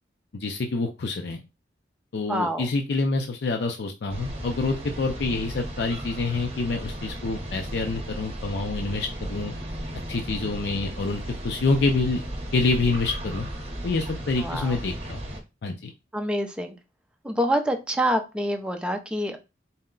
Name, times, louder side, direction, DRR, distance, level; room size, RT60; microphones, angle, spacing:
voice 1, 0.3-1.4 2.1-9.5 10.1-12.2 12.5-13.4 13.8-15.2 15.6-15.9, left 3 dB, 65° left, 4 dB, 0.5 m, -27 dB
voice 2, 2.3-2.7 14.4-14.8 16.1-16.7 17.2-19.4, equal, 5° right, 4 dB, 0.5 m, -26 dB
sound 1, 4.1-15.4, right 1 dB, 35° right, 0.9 m, -35 dB
4.1 x 2.2 x 3.7 m, 0.27 s
head